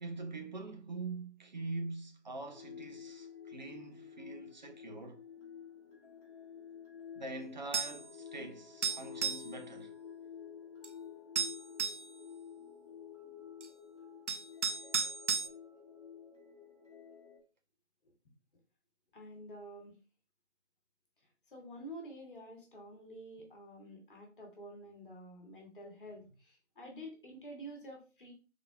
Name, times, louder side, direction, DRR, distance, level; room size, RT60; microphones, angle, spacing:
voice 1, 0.0-5.2 7.1-10.0, right 3 dB, 40° right, 0.7 m, -44 dB
sound 1, 2.5-17.4, left 7 dB, 30° left, 2.0 m, -51 dB
sound 2, 7.7-8.0 8.8-9.5 10.8-10.9 11.4-12.1 13.6-13.7 14.3-15.5, right 6 dB, 75° right, 0.6 m, -34 dB
voice 2, 19.1-19.9 21.5-28.3, equal, 45° left, 1.6 m, -49 dB
4.7 x 3.8 x 2.3 m
figure-of-eight pair, 155°, 36 cm